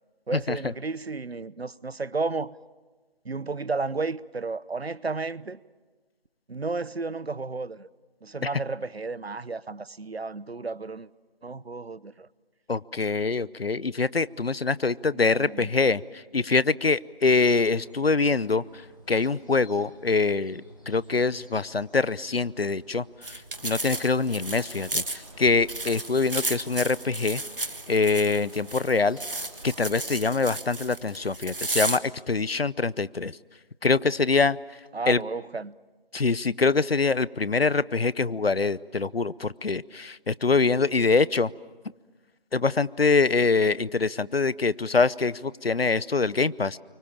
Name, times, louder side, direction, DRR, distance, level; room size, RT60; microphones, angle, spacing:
voice 1, 0.3-2.5 3.2-5.6 6.5-7.9 8.2-11.1 11.4-12.3 15.1-15.7 34.9-35.8, right 3 dB, 80° right, 0.9 m, -32 dB
voice 2, 12.7-16.0 16.3-18.6 19.1-23.4 23.6-27.4 27.9-29.2 29.6-33.3 33.8-34.6 35.1-35.2 36.1-41.5 42.5-46.8, left 4 dB, 75° left, 0.8 m, -24 dB
sound 1, 17.3-29.8, equal, 20° left, 1.8 m, -54 dB
sound 2, 23.2-32.0, right 2 dB, 60° right, 1.6 m, -34 dB
sound 3, 23.6-30.1, right 1 dB, 35° right, 3.2 m, -52 dB
30.0 x 24.5 x 7.2 m
figure-of-eight pair, 180°, 30 cm